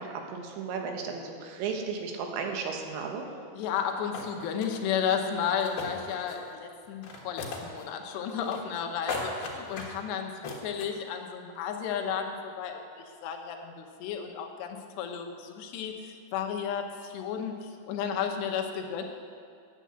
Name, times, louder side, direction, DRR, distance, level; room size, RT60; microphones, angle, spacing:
voice 1, 0.0-3.3, right 5 dB, 85° right, 3 dB, 3.5 m, -34 dB
voice 2, 3.6-10.3 10.6-12.8 13.2-19.0, left 7 dB, 80° left, 3 dB, 3.0 m, -33 dB
sound 1, 3.8-3.9 4.1-4.8 5.4-6.5 6.8-7.8 8.1-8.8 9.1-10.0 10.4-10.9, left 4 dB, 60° left, 3.1 m, -37 dB
9.7 x 8.3 x 8.6 m, 2.3 s
omnidirectional pair, 5.1 m